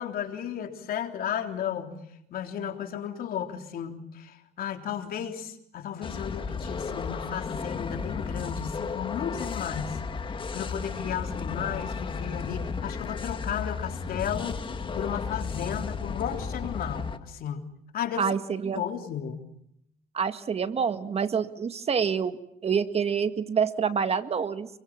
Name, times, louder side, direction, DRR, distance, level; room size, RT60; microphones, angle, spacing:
voice 1, 0.0-2.0 2.3-14.6 14.9-17.6 17.9-18.2 18.7-19.4, left 8 dB, 60° left, 5 dB, 3.5 m, -34 dB
sound 1, 6.0-17.2, left 5 dB, 30° left, 1.8 m, -34 dB
voice 2, 18.2-18.8 20.1-24.7, right 6 dB, 35° right, 9 dB, 1.9 m, -27 dB
28.5 x 22.5 x 7.5 m, 0.75 s
cardioid pair, 110°, 17 cm